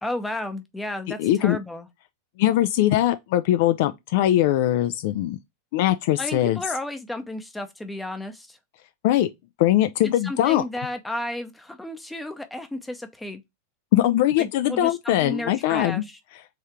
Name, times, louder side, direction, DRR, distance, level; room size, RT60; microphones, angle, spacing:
voice 1, 0.0-1.9 6.2-8.6 10.0-13.4 14.4-16.2, left 1 dB, 5° left, 0.7 m, -33 dB
voice 2, 1.2-1.6 2.4-5.4 5.7-6.6 9.0-9.3 9.6-10.6 13.9-16.0, left 13 dB, 50° left, 0.3 m, -21 dB
3.6 x 3.3 x 4.3 m
figure-of-eight pair, 90°, 0 cm